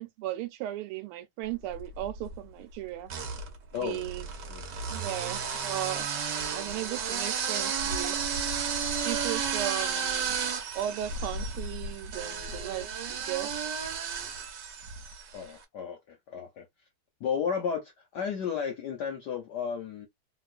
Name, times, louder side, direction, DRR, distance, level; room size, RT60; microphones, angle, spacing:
voice 1, 0.0-3.1 3.8-4.2 4.9-6.1 6.5-8.2 9.0-10.4 10.7-13.5, right 13 dB, 80° right, 1.5 m, -36 dB
sound 1, 1.7-2.4 3.1-15.4, right 6 dB, 60° right, 1.2 m, -33 dB
voice 2, 3.7-4.1 4.5-4.6 15.3-16.6 17.2-20.1, left 7 dB, 65° left, 1.1 m, -33 dB
3.0 x 3.0 x 2.4 m
omnidirectional pair, 2.4 m